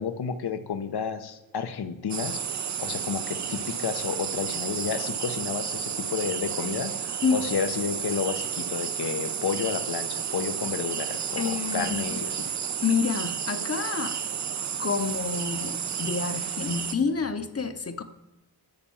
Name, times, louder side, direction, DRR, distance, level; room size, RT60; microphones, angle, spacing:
voice 1, 0.0-2.4 2.8-12.5, left 6 dB, 75° left, 10 dB, 1.1 m, -31 dB
sound 1, 2.1-16.9, right 8 dB, 45° right, 0.6 m, -32 dB
voice 2, 11.4-12.2 12.8-14.2 14.8-18.0, left 5 dB, 40° left, 8 dB, 1.0 m, -28 dB
10.5 x 7.4 x 7.1 m, 1.0 s
cardioid pair, 75°, 39 cm